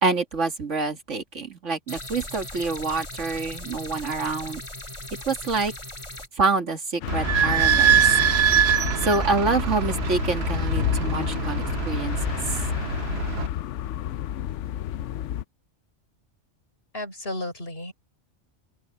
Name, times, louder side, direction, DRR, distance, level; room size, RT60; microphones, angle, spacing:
voice 1, 0.0-4.6 5.3-5.7 6.4-8.0 9.0-12.2, right 3 dB, 80° right, 2.5 m, -26 dB
sound 1, 1.9-6.3, left 1 dB, 25° left, 4.3 m, -38 dB
sound 2, 7.0-15.4, left 11 dB, 80° left, 0.9 m, -30 dB
Idling / Squeak, 7.1-13.5, right 8 dB, 65° right, 1.0 m, -24 dB
voice 2, 16.9-17.9, left 1 dB, 55° left, 5.7 m, -33 dB
open air
omnidirectional pair, 1.2 m